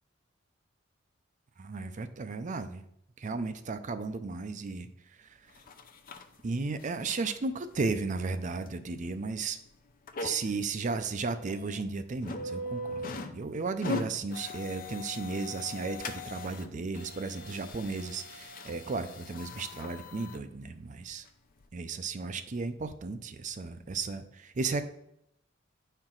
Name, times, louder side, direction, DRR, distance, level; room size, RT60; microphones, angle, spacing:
voice 1, 1.6-2.8 3.2-5.4 6.4-9.6 10.2-21.3 21.7-24.9, right 4 dB, 40° right, 10 dB, 0.5 m, -34 dB
sound 1, 5.6-6.2 6.7-7.4 7.8-7.9 8.7-8.8 9.2-9.4 10.1-10.6 11.1-11.2 11.5-11.8 12.2-13.4 13.7-16.7 16.9-20.4 21.1-21.2 21.6-21.7, left 2 dB, 45° left, 0.6 m, -40 dB
9.6 x 4.5 x 3.8 m, 0.76 s
head